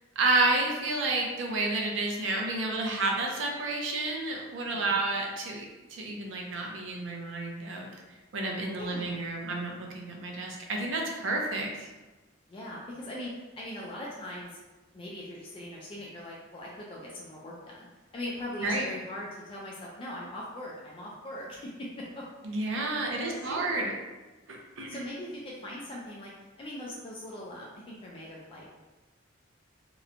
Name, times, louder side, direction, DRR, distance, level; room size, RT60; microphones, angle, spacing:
voice 1, 0.2-7.9 8.3-11.9 18.6-18.9 22.4-23.9 24.5-25.0, right 2 dB, 80° right, 0 dB, 0.5 m, -30 dB
voice 2, 8.8-9.2 12.5-14.6 14.9-17.9 18.1-22.6 23.1-23.9 24.9-28.8, left 1 dB, 30° left, -4 dB, 0.3 m, -41 dB
2.9 x 2.1 x 2.4 m, 1.2 s
head